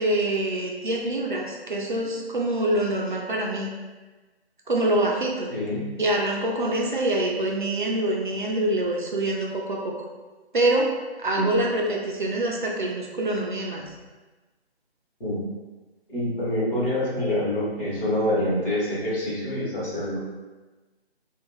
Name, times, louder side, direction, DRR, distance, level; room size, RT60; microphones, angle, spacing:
voice 1, 0.0-3.7 4.7-5.5 6.0-10.0 10.5-10.9 11.2-13.9, right 1 dB, 50° right, -1 dB, 0.4 m, -25 dB
voice 2, 5.5-5.8 11.4-11.5 15.2-15.4 16.1-20.2, left 1 dB, 55° left, -7 dB, 1.4 m, -26 dB
2.8 x 2.3 x 2.2 m, 1.2 s
figure-of-eight pair, 155°, 32 cm